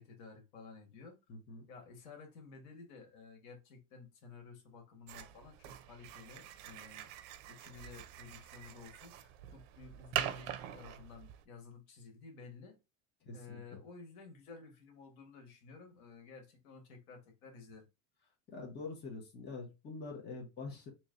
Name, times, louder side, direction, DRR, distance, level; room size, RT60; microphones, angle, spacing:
voice 1, 0.0-1.2 1.7-7.1 7.5-12.8 13.3-17.8, left 4 dB, 85° left, 1.6 m, -53 dB
voice 2, 1.3-1.7 13.2-13.8 18.5-20.9, left 3 dB, 25° left, 1.1 m, -45 dB
sound 1, 5.1-11.4, right 11 dB, 65° right, 0.6 m, -43 dB
3.1 x 2.9 x 3.8 m
supercardioid pair, 145°, 41 cm